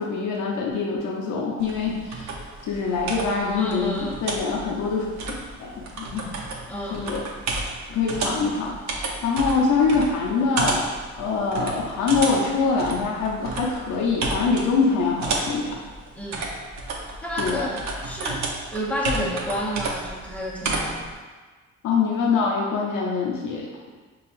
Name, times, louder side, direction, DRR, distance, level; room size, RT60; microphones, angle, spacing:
voice 1, 0.0-2.3 2.7-5.1 5.6-6.3 6.9-7.2 7.9-8.7 9.2-10.9 11.2-15.8 17.4-17.7 21.8-23.9, left 4 dB, 80° left, -2 dB, 0.7 m, -24 dB
sound 1, 1.6-21.1, right 3 dB, 65° right, 0.7 m, -32 dB
voice 2, 3.6-4.2 6.7-7.1 16.1-16.5 17.2-21.1, equal, 5° left, -3 dB, 0.7 m, -30 dB
5.6 x 2.4 x 2.5 m, 1.4 s
cardioid pair, 90°, 30 cm